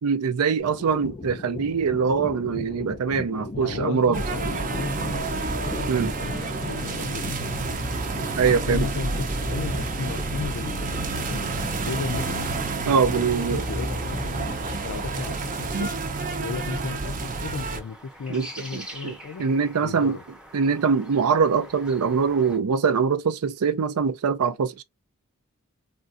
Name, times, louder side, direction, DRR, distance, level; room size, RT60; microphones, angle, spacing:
voice 1, 0.0-4.2 5.9-6.1 8.4-8.9 12.9-13.6 15.7-15.9 18.3-20.2 20.5-24.8, right 5 dB, 85° right, 0.5 m, -23 dB
sound 1, 0.6-14.8, left 2 dB, 25° left, 0.4 m, -37 dB
voice 2, 3.5-5.9 6.2-8.0 8.5-12.5 13.0-15.9 16.4-19.5 19.8-20.2, left 5 dB, 85° left, 0.5 m, -35 dB
sound 2, 4.1-17.8, right 3 dB, 40° right, 0.6 m, -29 dB
sound 3, 6.2-22.6, equal, 5° right, 0.7 m, -47 dB
3.6 x 2.3 x 2.5 m
head